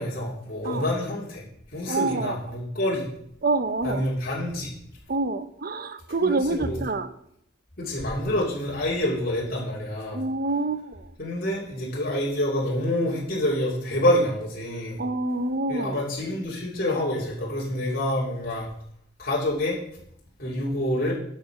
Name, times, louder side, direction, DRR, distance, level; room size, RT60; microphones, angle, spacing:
voice 1, 0.0-3.1 3.8-4.7 6.2-6.8 7.8-10.2 11.2-15.0 15.7-18.7 19.2-19.8 20.4-21.1, left 1 dB, 50° left, -5 dB, 2.8 m, -27 dB
voice 2, 1.9-2.4 3.4-4.1 5.1-7.1 10.1-11.1 15.0-16.0, right 3 dB, 50° right, 12 dB, 0.7 m, -27 dB
11.5 x 5.6 x 5.8 m, 0.73 s
head